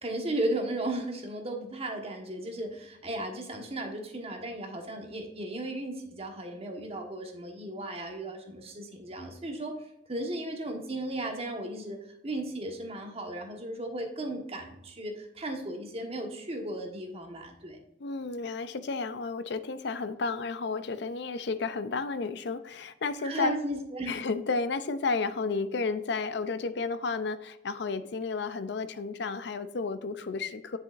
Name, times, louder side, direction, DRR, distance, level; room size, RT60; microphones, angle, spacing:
voice 1, 0.0-9.7 10.1-12.0 12.2-17.8 23.2-24.2, right 1 dB, 35° right, 2 dB, 1.3 m, -35 dB
voice 2, 18.0-23.5 24.1-30.8, left 4 dB, 65° left, 12 dB, 0.5 m, -32 dB
8.3 x 6.9 x 2.5 m, 0.82 s
head